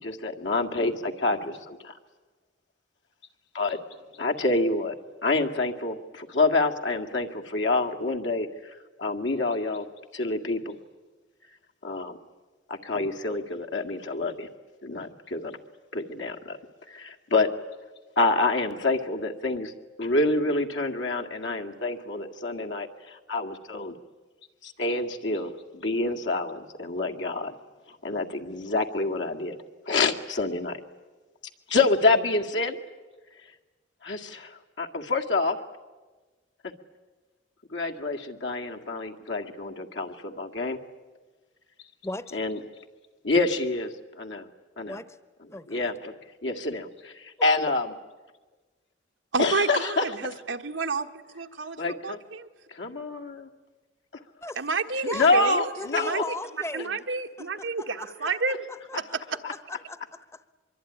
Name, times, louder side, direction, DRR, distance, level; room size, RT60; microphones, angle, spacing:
voice 1, 0.0-1.9 3.5-3.8 4.2-5.0 5.2-9.9 10.1-10.8 11.8-12.2 12.7-14.5 14.8-15.6 15.9-16.6 16.9-17.5 18.2-19.7 20.0-24.0 24.6-27.5 28.0-30.8 31.7-32.8 34.0-35.6 37.7-40.8 42.3-42.6 43.2-44.5 44.8-45.0 45.7-46.1 46.4-47.9 49.4-50.1 51.8-52.2 52.7-53.5 55.1-56.2 56.8-56.9 59.4-59.5, left 3 dB, 70° left, 3 dB, 2.0 m, -27 dB
voice 2, 42.0-42.4 44.9-45.1 45.5-45.9 47.4-47.5 54.4-54.6 55.1-55.3 55.8-57.0 57.4-58.4 58.7-59.0 59.3-60.4, left 2 dB, 15° left, 14 dB, 1.0 m, -38 dB
voice 3, 49.3-51.1 51.3-52.5 54.6-55.7 56.0-56.2 56.7-58.6 59.0-59.2, right 4 dB, 90° right, 6 dB, 1.5 m, -30 dB
24.5 x 23.5 x 10.0 m, 1.3 s
head